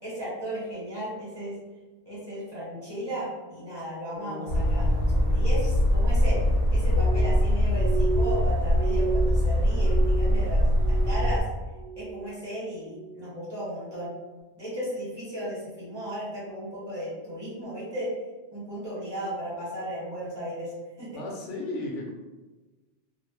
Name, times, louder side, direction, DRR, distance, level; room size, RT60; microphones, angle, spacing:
voice 1, 0.0-1.6 2.0-6.4 6.7-11.4 12.0-14.1 14.6-18.1 18.5-21.2, equal, 25° right, -9 dB, 1.1 m, -35 dB
sound 1, 4.1-8.4, left 2 dB, 5° right, 0.6 m, -44 dB
sound 2, 4.5-11.4, equal, 65° left, 0.8 m, -23 dB
Glass, 6.9-11.5 11.8-12.4 12.8-13.4 13.9-14.2, right 5 dB, 45° right, 0.7 m, -34 dB
voice 2, 21.1-22.1, left 2 dB, 90° left, 0 dB, 1.0 m, -34 dB
2.5 x 2.0 x 3.0 m, 1.2 s
omnidirectional pair, 1.2 m